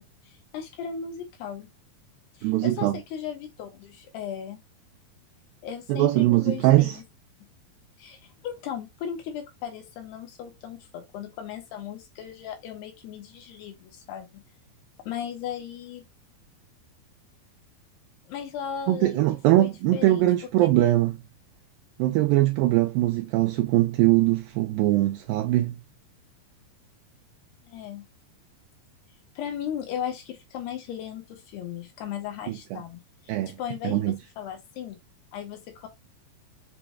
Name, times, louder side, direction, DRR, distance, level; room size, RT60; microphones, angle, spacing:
voice 1, 0.0-1.7 2.4-4.6 5.6-7.0 8.0-14.4 15.1-16.0 18.3-20.3 20.6-20.7 27.6-28.1 29.4-33.3 33.6-35.0 35.3-35.9, left 8 dB, 80° left, 3.2 m, -37 dB
voice 2, 2.4-3.0 5.9-7.0 18.9-21.1 22.0-25.8 32.5-32.8 33.3-33.6 33.8-34.2, right 16 dB, 85° right, 2.0 m, -22 dB
6.8 x 3.1 x 2.3 m
omnidirectional pair, 4.7 m